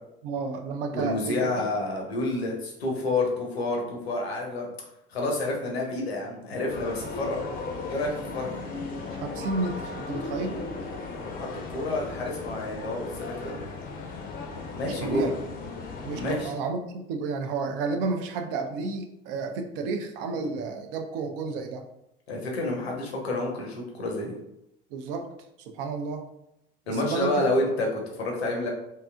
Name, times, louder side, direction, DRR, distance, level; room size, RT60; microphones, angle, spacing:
voice 1, 0.2-1.5 9.1-10.6 14.8-15.3 16.0-21.8 24.9-25.3 25.6-26.2 26.9-27.5, right 4 dB, 60° right, 5 dB, 0.5 m, -31 dB
voice 2, 0.9-4.7 5.1-7.4 7.9-8.7 11.2-13.6 14.7-15.3 16.0-16.5 22.3-24.3 26.9-28.7, left 2 dB, 80° left, 0 dB, 0.7 m, -29 dB
sound 1, 6.7-16.5, left 3 dB, 30° left, 0.5 m, -36 dB
2.7 x 2.3 x 2.2 m, 0.83 s
figure-of-eight pair, 65°, 31 cm